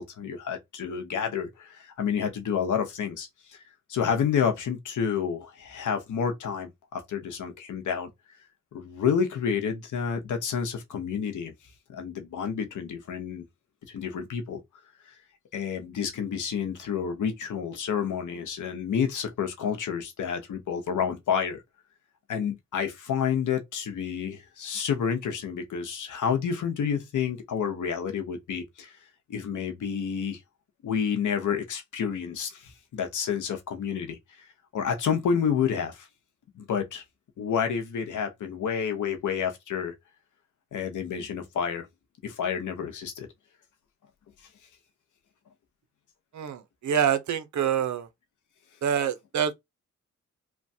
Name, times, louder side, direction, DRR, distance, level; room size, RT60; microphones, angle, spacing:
voice 1, 0.0-3.6 3.9-8.1 8.7-11.5 11.9-13.5 13.9-14.6 15.1-15.2 15.5-21.6 22.3-29.0 29.3-30.4 30.8-34.2 34.7-36.1 36.5-37.0 37.4-39.9 40.7-41.9 42.2-43.3, left 7 dB, 85° left, 0.8 m, -29 dB
voice 2, 46.3-48.1 48.8-49.5, right 8 dB, 70° right, 0.7 m, -26 dB
3.0 x 2.2 x 2.7 m
wide cardioid pair, 100°, 30 cm